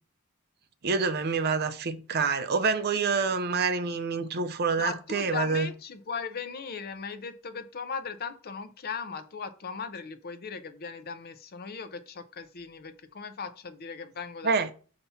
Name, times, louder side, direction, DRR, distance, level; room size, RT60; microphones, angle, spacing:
voice 1, 0.8-5.7 14.4-14.7, right 4 dB, 50° right, 0.6 m, -27 dB
voice 2, 4.8-14.7, left 5 dB, 45° left, 0.6 m, -38 dB
6.8 x 2.9 x 5.6 m
head